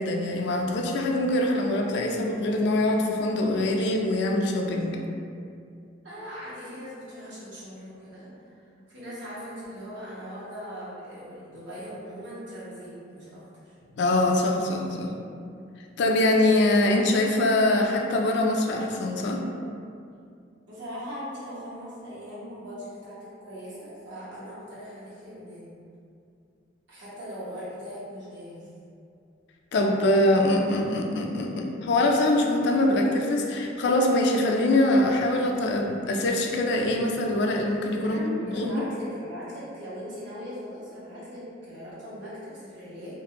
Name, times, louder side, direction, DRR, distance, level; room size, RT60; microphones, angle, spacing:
voice 1, 0.0-5.0 13.9-15.1 16.0-19.4 29.7-38.8, left 1 dB, 65° left, 1 dB, 0.3 m, -23 dB
voice 2, 6.0-8.6 8.9-13.7 20.7-25.7 26.9-28.7 38.0-43.2, equal, 90° right, -10 dB, 1.1 m, -40 dB
2.5 x 2.4 x 2.8 m, 2.4 s
head